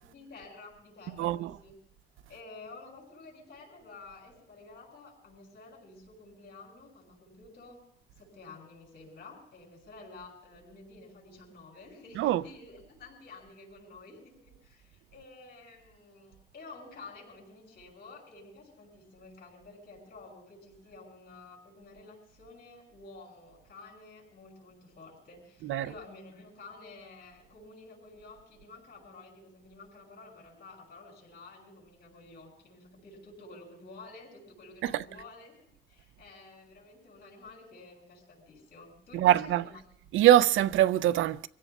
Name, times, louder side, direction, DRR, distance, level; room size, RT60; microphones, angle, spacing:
voice 1, 0.0-1.7 2.3-7.8 8.2-39.8, left 3 dB, 55° left, 6.6 m, -51 dB
voice 2, 1.2-1.5 12.2-12.4 25.6-25.9 34.8-34.9 39.1-39.6 40.1-41.5, right 13 dB, 80° right, 0.5 m, -23 dB
25.5 x 16.0 x 2.4 m
cardioid pair, 90°, 20 cm